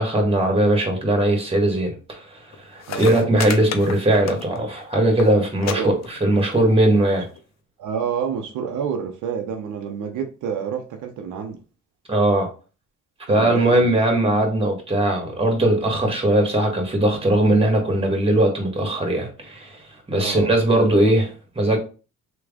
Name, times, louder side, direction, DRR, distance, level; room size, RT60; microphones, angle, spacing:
voice 1, 0.0-2.4 2.7-7.3 12.1-12.5 13.3-19.8 20.1-21.8, right 1 dB, 20° right, 1.6 m, -19 dB
sound 1, 2.5-2.6 2.8-4.8 5.0-5.3 5.6-5.8 6.0-6.5 7.4-7.5, left 7 dB, 60° left, 0.6 m, -31 dB
voice 2, 2.9-3.3 5.6-5.9 7.8-11.6 13.3-14.0 20.2-20.5, right 7 dB, 85° right, 0.8 m, -28 dB
3.3 x 3.0 x 3.6 m
cardioid pair, 90°, 30 cm